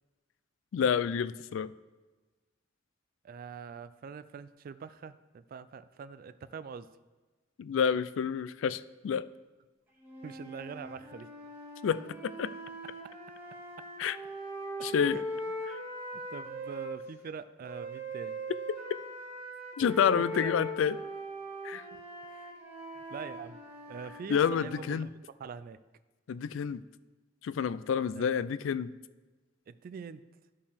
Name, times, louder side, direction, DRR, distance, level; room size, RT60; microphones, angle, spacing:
voice 1, 0.7-1.7 7.6-9.3 11.8-12.5 14.0-14.2 14.8-15.2 19.8-21.0 21.6-21.8 24.3-25.1 26.3-26.8 27.4-28.9, left 7 dB, 80° left, 16 dB, 0.3 m, -29 dB
voice 2, 3.2-6.9 10.2-11.3 13.0-13.1 13.8-13.9 14.8-15.2 16.1-18.4 19.8-20.7 21.7-21.8 22.3-22.5 22.9-23.6 23.9-25.1 25.4-25.8 28.2-28.4 29.7-30.2, right 6 dB, 50° right, 13 dB, 0.3 m, -44 dB
sound 1, 10.0-16.9 17.6-24.8, equal, 15° right, 1.7 m, -41 dB
13.0 x 5.4 x 3.4 m, 1.2 s
head